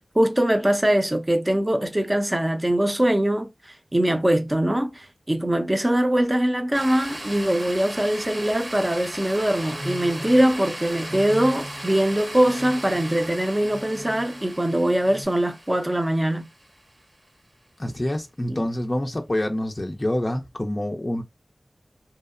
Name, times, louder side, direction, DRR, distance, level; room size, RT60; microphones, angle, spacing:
voice 1, 0.1-16.4 18.5-18.6, right 1 dB, 25° right, 0.6 m, -22 dB
sound 1, 6.7-17.0, right 1 dB, 40° right, 0.9 m, -37 dB
sound 2, 8.9-14.6 14.9-15.2, equal, 80° right, 1.2 m, -40 dB
voice 2, 17.8-21.2, left 1 dB, 30° left, 0.4 m, -26 dB
2.7 x 2.0 x 2.4 m
wide cardioid pair, 50°, 0 cm